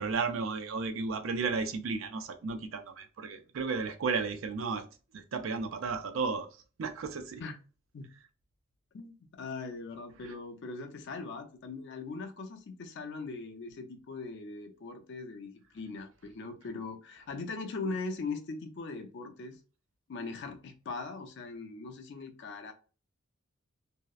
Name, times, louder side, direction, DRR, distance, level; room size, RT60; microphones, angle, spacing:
voice 1, 0.0-4.8 5.1-6.5 6.8-7.4, right 4 dB, 75° right, 0.4 m, -33 dB
voice 2, 8.9-19.6 20.1-22.7, left 3 dB, 60° left, 0.5 m, -40 dB
2.7 x 2.0 x 2.3 m
head